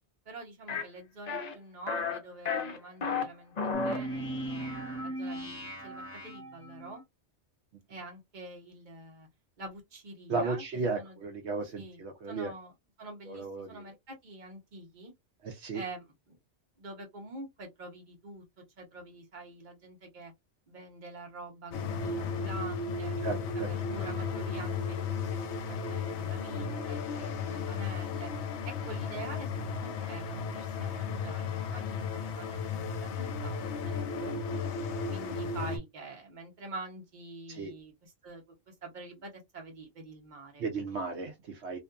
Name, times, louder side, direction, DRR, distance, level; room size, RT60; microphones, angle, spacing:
voice 1, 0.3-4.7 5.0-7.0 7.9-9.3 9.6-10.6 11.0-11.2 11.8-12.0 12.3-12.7 13.0-15.1 15.7-16.4 16.8-18.4 18.8-20.3 20.7-25.0 25.3-28.3 28.6-34.4 35.1-41.0, right 2 dB, 45° right, 1.1 m, -46 dB
sound 1, 0.7-0.8 1.3-1.5 1.9-2.2 2.5-3.2 3.6-4.0, left 5 dB, 45° left, 0.6 m, -31 dB
sound 2, 3.7-7.0, right 1 dB, 10° left, 1.0 m, -38 dB
voice 2, 10.3-12.5 13.3-13.8 15.4-15.8 23.2-23.7 37.5-37.7 40.6-41.8, right 3 dB, 70° right, 0.9 m, -35 dB
sound 3, 21.7-35.8, left 5 dB, 75° left, 0.8 m, -34 dB
2.5 x 2.5 x 2.2 m
omnidirectional pair, 1.2 m